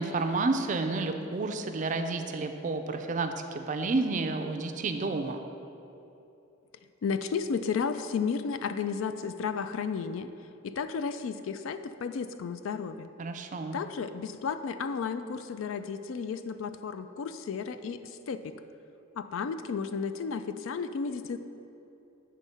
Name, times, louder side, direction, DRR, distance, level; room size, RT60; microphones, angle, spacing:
voice 1, 0.0-5.4 13.2-13.8, right 3 dB, 40° right, 6 dB, 0.4 m, -30 dB
voice 2, 7.0-10.3 10.6-13.1 13.7-18.0 18.3-18.5 19.2-21.4, left 5 dB, 75° left, 10 dB, 0.3 m, -33 dB
8.6 x 3.6 x 5.5 m, 2.9 s
head